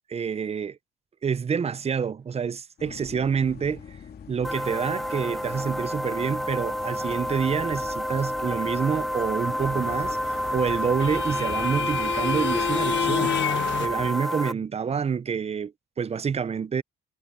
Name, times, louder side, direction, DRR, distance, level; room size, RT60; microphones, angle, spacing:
voice 1, 0.1-0.8 1.2-4.0 4.3-13.4 13.8-15.7 16.0-16.8, right 6 dB, 30° right, 0.6 m, -27 dB
sound 1, 2.8-14.1, left 7 dB, 50° left, 3.3 m, -42 dB
sound 2, 4.4-14.5, equal, ahead, 1.0 m, -29 dB
sound 3, 10.0-13.9, left 11 dB, 70° left, 1.6 m, -30 dB
cardioid pair, 90°, 20 cm